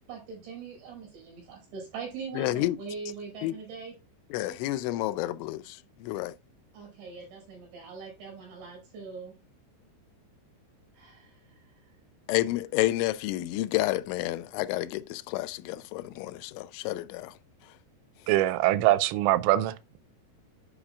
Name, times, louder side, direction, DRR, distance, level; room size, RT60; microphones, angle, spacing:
voice 1, 0.1-4.0 6.7-9.3 10.9-11.9, right 5 dB, 70° right, 7.0 m, -42 dB
voice 2, 2.4-2.8 3.4-3.6 4.3-6.4 12.3-17.3, left 16 dB, 90° left, 2.9 m, -30 dB
voice 3, 18.3-20.0, right 15 dB, 90° right, 2.9 m, -23 dB
11.5 x 5.1 x 2.3 m
omnidirectional pair, 5.3 m